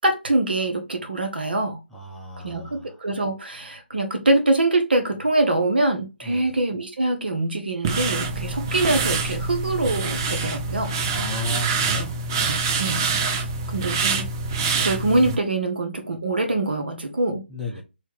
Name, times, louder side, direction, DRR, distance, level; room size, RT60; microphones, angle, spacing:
voice 1, 0.0-1.8 2.4-10.9 12.8-13.0 13.7-14.3 14.8-17.4, right 2 dB, 65° right, 1.1 m, -24 dB
voice 2, 1.9-2.9 6.2-6.5 11.1-12.1 17.5-17.8, left 2 dB, 5° left, 0.9 m, -32 dB
sound 1, 7.8-15.4, right 4 dB, 25° right, 0.4 m, -25 dB
3.1 x 2.8 x 3.9 m
figure-of-eight pair, 150°, 6 cm